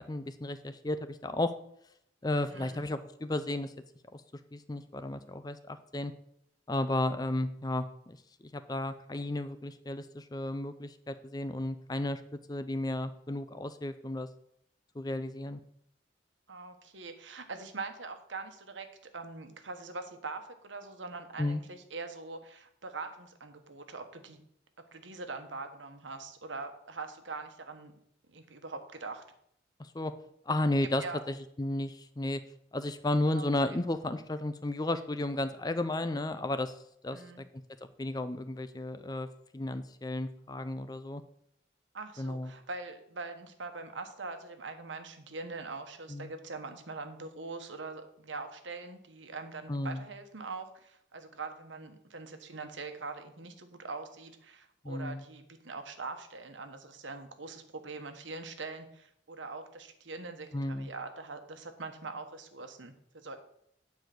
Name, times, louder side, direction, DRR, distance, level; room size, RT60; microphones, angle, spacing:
voice 1, 0.0-1.5 2.2-3.7 4.1-4.2 4.5-6.1 6.7-8.2 8.5-12.2 12.5-14.3 15.0-15.6 21.4-21.6 29.8-30.1 30.5-32.4 32.7-36.7 37.0-37.5 38.0-39.3 39.5-41.2 42.2-42.5 46.1-46.3 49.7-50.0 54.8-55.2 60.5-60.9, left 1 dB, 20° left, 11 dB, 0.4 m, -33 dB
voice 2, 2.5-2.9 16.5-18.9 19.1-24.4 24.9-27.9 28.3-29.2 31.0-31.2 33.3-33.4 37.1-37.4 41.9-63.4, right 3 dB, 75° right, 7 dB, 1.2 m, -43 dB
9.3 x 4.8 x 7.7 m, 0.73 s
head